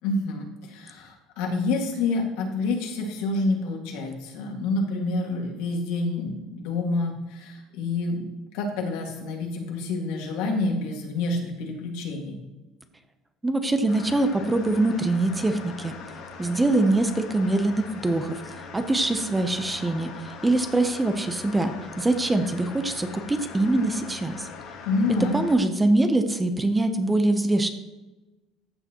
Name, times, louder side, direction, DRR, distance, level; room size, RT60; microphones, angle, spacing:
voice 1, 0.0-8.3 8.5-12.4 24.8-25.4, left 3 dB, 80° left, 1 dB, 2.0 m, -28 dB
voice 2, 13.4-15.9 16.4-18.4 18.7-24.5 25.3-27.7, right 2 dB, 10° right, 8 dB, 0.8 m, -23 dB
sound 1, 13.9-25.5, left 5 dB, 65° left, 1.8 m, -41 dB
14.0 x 6.8 x 3.0 m, 1.1 s
cardioid pair, 125°, 0 cm